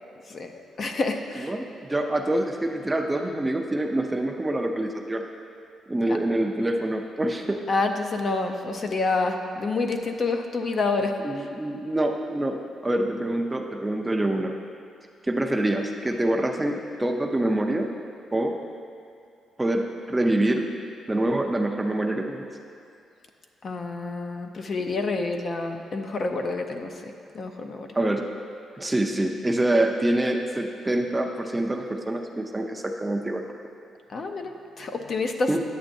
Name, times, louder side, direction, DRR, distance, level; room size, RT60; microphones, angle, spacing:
voice 1, 0.3-1.5 6.1-6.2 7.7-11.5 23.6-27.9 34.1-35.5, left 3 dB, 40° left, 4 dB, 0.5 m, -28 dB
voice 2, 1.5-5.2 5.9-7.6 11.2-14.6 15.2-17.9 18.3-18.6 19.6-20.8 21.1-22.5 27.9-28.3 28.8-33.5 35.5-35.6, right 1 dB, 10° right, 2 dB, 0.4 m, -26 dB
10.0 x 8.1 x 2.6 m, 2.5 s
cardioid pair, 135°, 0 cm